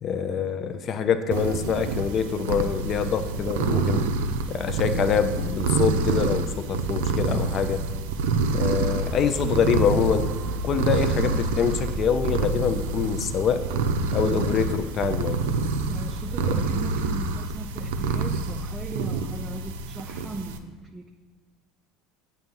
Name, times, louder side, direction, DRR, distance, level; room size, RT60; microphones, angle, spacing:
voice 1, 0.0-4.1 4.5-7.8 8.5-10.3 10.6-13.6 14.1-15.4 16.5-16.6, left 6 dB, 45° left, 10 dB, 0.5 m, -25 dB
sound 1, 1.3-20.6, right 4 dB, 80° right, 0.4 m, -27 dB
sound 2, 8.4-16.3 16.9-17.0, right 3 dB, 45° right, 0.8 m, -36 dB
voice 2, 15.9-21.1, right 3 dB, 15° right, 3 dB, 0.4 m, -38 dB
7.6 x 2.7 x 5.3 m, 1.4 s
hypercardioid pair, 90°, 0 cm